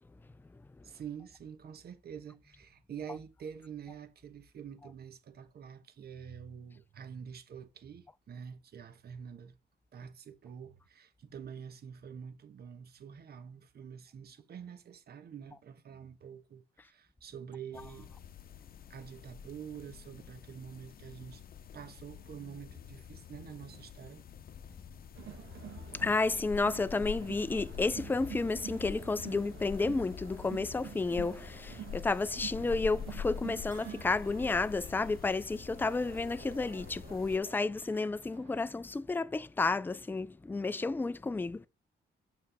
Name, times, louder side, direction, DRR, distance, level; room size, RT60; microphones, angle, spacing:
voice 1, 0.8-9.5 9.9-18.2 18.9-21.4 21.7-24.2 24.7-25.0, right 7 dB, 60° right, 1.4 m, -47 dB
sound 1, 17.7-37.4, left 8 dB, 50° left, 0.8 m, -46 dB
Crowd, 25.1-38.7, right 10 dB, 85° right, 1.5 m, -49 dB
voice 2, 25.9-41.7, left 3 dB, 10° left, 0.4 m, -31 dB
Bell, 33.7-35.9, right 4 dB, 25° right, 5.4 m, -60 dB
6.8 x 6.0 x 3.6 m
cardioid pair, 115°, 19 cm